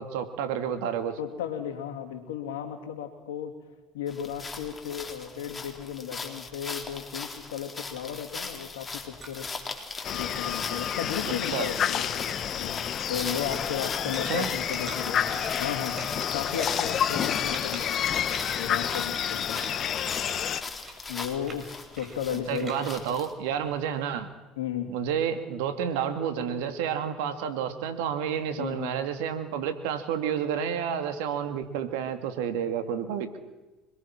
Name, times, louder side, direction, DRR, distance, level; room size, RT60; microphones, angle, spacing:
voice 1, 0.0-1.2 11.5-11.7 14.3-14.5 22.5-24.3 24.9-33.4, right 8 dB, 80° right, 8 dB, 2.6 m, -30 dB
voice 2, 1.2-3.5 3.9-9.5 10.1-19.6 21.1-23.0 24.6-24.9 28.6-29.0, left 9 dB, 85° left, 5 dB, 2.9 m, -35 dB
sound 1, 4.1-23.3, left 4 dB, 25° left, 3.9 m, -41 dB
sound 2, 6.9-10.9 11.1-11.9 12.2-24.1, right 3 dB, 40° right, 5.9 m, -47 dB
sound 3, 10.0-20.6, left 9 dB, 45° left, 1.6 m, -29 dB
26.0 x 21.5 x 6.1 m, 1.1 s
hypercardioid pair, 80°, 0 cm